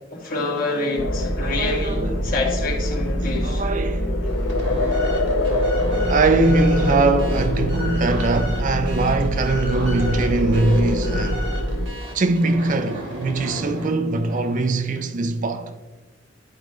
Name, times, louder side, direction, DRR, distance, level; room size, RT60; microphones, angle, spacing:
voice 1, 0.1-3.6, left 2 dB, 50° left, 1.9 m, -26 dB
sound 1, 1.0-11.9, left 1 dB, 90° left, 0.8 m, -24 dB
voice 2, 1.4-2.3 3.0-4.2 6.1-11.5 12.1-15.7, right 3 dB, 45° right, 0.5 m, -22 dB
sound 2, 4.2-14.8, equal, 80° right, 2.1 m, -36 dB
11.5 x 5.0 x 3.1 m
head